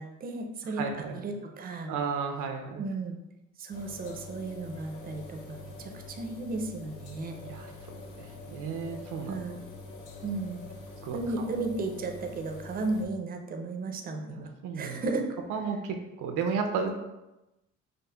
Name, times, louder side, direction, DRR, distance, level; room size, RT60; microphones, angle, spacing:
voice 1, 0.0-1.9 2.8-3.2 3.6-7.3 9.2-9.6 10.2-10.6 11.1-14.5 14.7-15.4, right 3 dB, 30° right, 4 dB, 0.4 m, -34 dB
voice 2, 0.8-1.3 1.9-2.8 7.4-9.4 11.0-11.5 14.3-15.0 15.5-16.9, right 5 dB, 85° right, 4 dB, 0.5 m, -34 dB
sound 1, 3.7-13.1, left 3 dB, 85° left, 0.6 m, -45 dB
5.2 x 2.1 x 2.2 m, 0.98 s
cardioid pair, 90°, 30 cm